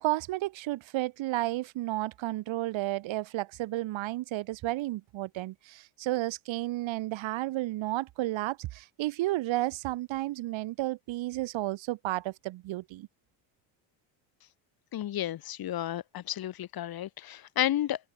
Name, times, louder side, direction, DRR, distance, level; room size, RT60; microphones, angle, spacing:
voice 1, 0.0-13.1, right 17 dB, 65° right, 2.6 m, -32 dB
voice 2, 14.9-18.0, left 12 dB, 45° left, 1.7 m, -32 dB
open air
cardioid pair, 140°, 49 cm